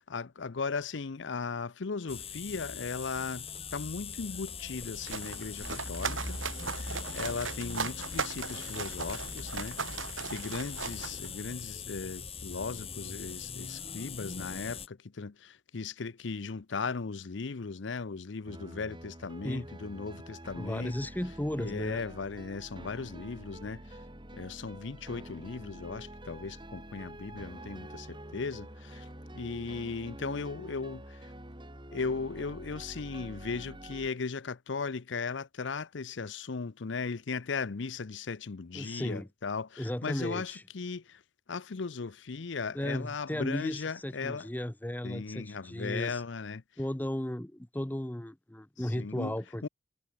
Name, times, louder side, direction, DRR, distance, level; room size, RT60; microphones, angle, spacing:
voice 1, 0.0-6.4 6.7-10.0 10.3-20.9 21.6-24.0 24.3-29.1 29.3-31.3 31.9-41.2 41.5-44.5 45.0-46.6 49.0-49.4 49.6-49.7, left 4 dB, 65° left, 0.6 m, -37 dB
sound 1, 2.1-14.9, left 5 dB, 30° left, 3.7 m, -41 dB
sound 2, 4.7-11.7, right 5 dB, 75° right, 3.2 m, -38 dB
sound 3, 18.4-34.1, right 1 dB, 25° right, 7.7 m, -47 dB
voice 2, 20.6-22.0 38.7-39.3 39.8-40.6 42.7-46.2 46.8-49.7, left 1 dB, 10° left, 0.7 m, -35 dB
head